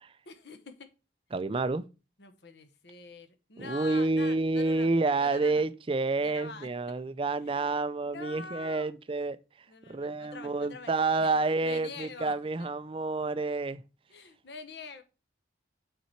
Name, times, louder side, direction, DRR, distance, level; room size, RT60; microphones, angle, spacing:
voice 1, 0.3-0.9 2.2-4.9 5.2-5.7 6.2-6.7 7.4-7.7 8.0-8.9 9.7-11.3 11.6-12.3 12.6-12.7 14.1-15.0, left 4 dB, 60° left, 0.9 m, -45 dB
voice 2, 1.3-1.9 3.6-9.4 9.9-13.8, right 3 dB, 30° right, 0.4 m, -29 dB
5.6 x 4.3 x 4.3 m
head